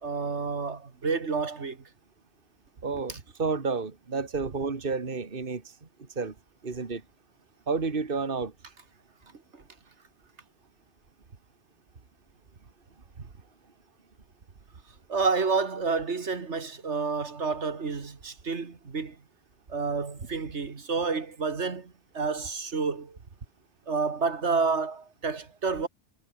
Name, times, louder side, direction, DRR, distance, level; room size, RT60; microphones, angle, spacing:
voice 1, 0.0-1.9 3.1-3.2 9.5-9.6 13.2-13.3 15.1-19.2 19.7-23.2 23.9-25.9, right 4 dB, 75° right, 2.3 m, -29 dB
voice 2, 2.8-6.3 6.6-7.0 7.7-8.5, right 4 dB, 50° right, 2.1 m, -31 dB
omnidirectional pair, 1.2 m